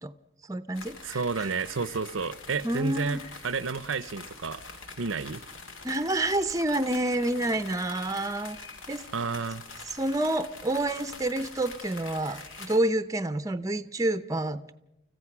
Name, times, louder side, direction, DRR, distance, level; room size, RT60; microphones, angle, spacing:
voice 1, 0.5-1.5 2.6-3.2 5.8-8.6 8.9-9.0 10.0-14.6, right 1 dB, 15° right, 11 dB, 0.7 m, -28 dB
sound 1, 0.7-12.8, left 3 dB, 70° left, 2.7 m, -45 dB
voice 2, 1.0-4.6 5.0-5.4 9.1-9.6, right 4 dB, 70° right, 17 dB, 0.7 m, -31 dB
29.0 x 15.0 x 6.0 m, 0.85 s
head